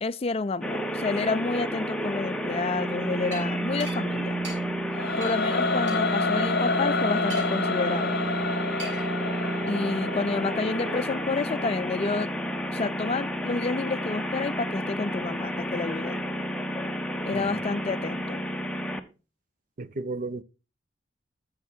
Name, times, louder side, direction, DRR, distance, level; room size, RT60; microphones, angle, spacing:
voice 1, 0.0-4.4 5.2-8.2 9.7-12.3 12.7-16.2 17.3-18.4, left 3 dB, 30° left, 0.4 m, -29 dB
sound 1, 0.6-19.0, right 1 dB, 5° left, 0.8 m, -30 dB
sound 2, 3.3-3.4 3.8-4.0 4.4-4.6 5.2-5.4 5.9-6.0 7.3-7.7 8.8-9.1, right 2 dB, 80° right, 5.9 m, -39 dB
Singing / Musical instrument, 4.9-12.0, left 4 dB, 55° left, 0.8 m, -30 dB
voice 2, 19.8-20.4, right 3 dB, 45° right, 0.6 m, -35 dB
11.5 x 7.2 x 4.4 m
head